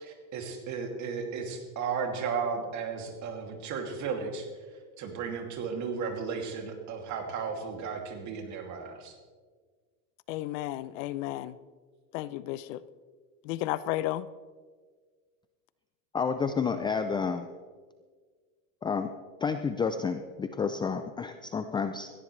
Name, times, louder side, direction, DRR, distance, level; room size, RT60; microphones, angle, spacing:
voice 1, 0.0-4.5 5.0-9.1, right 5 dB, 45° right, 3 dB, 2.6 m, -34 dB
voice 2, 10.3-11.5 12.1-12.8 13.5-14.3, left 15 dB, 70° left, 16 dB, 0.7 m, -33 dB
voice 3, 16.1-17.5 18.8-19.1 19.4-22.1, left 5 dB, 10° left, 9 dB, 0.4 m, -30 dB
17.5 x 15.0 x 3.2 m, 1.5 s
supercardioid pair, 130°, 40 cm